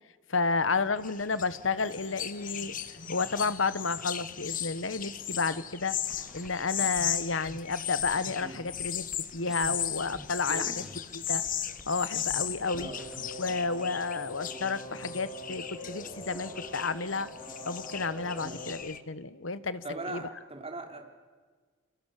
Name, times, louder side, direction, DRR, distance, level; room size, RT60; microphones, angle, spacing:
voice 1, 0.3-2.7 3.1-6.0 6.3-9.0 9.3-10.9 11.1-11.4 11.9-12.9 13.4-17.3 17.6-20.2, left 4 dB, 70° left, 15 dB, 1.2 m, -31 dB
sound 1, 0.7-19.0, left 10 dB, 45° left, 1.3 m, -37 dB
sound 2, 6.0-7.8 8.1-13.9, equal, 5° right, 1.4 m, -51 dB
sound 3, 12.7-18.7, equal, 25° left, 6.4 m, -44 dB
voice 2, 19.8-21.0, right 2 dB, 30° right, 3 dB, 4.4 m, -39 dB
29.0 x 24.5 x 8.4 m, 1.5 s
head